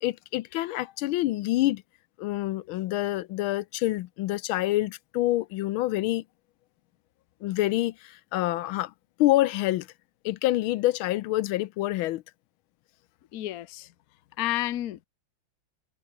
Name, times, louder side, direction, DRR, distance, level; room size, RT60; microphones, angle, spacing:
voice 1, 0.0-1.8 2.2-6.2 7.4-8.9 9.2-9.9 10.2-12.2, left 16 dB, 80° left, 1.4 m, -27 dB
voice 2, 13.3-13.9 14.4-15.1, left 15 dB, 60° left, 1.0 m, -31 dB
omnidirectional pair, 2.3 m